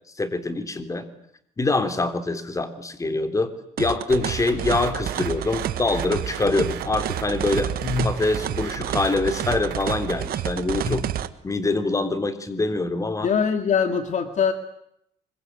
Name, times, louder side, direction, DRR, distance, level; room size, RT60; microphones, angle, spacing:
voice 1, 0.2-1.1 1.6-3.5 3.8-7.7 8.0-11.1 11.4-13.3, left 2 dB, 20° left, 10 dB, 3.4 m, -24 dB
sound 1, 3.8-11.3, right 11 dB, 65° right, 1.7 m, -30 dB
sound 2, 4.1-10.3, right 10 dB, 80° right, 4.8 m, -35 dB
voice 2, 13.2-14.5, left 6 dB, 45° left, 8 dB, 2.5 m, -22 dB
25.5 x 23.5 x 9.5 m, 0.74 s
cardioid pair, 110°, 17 cm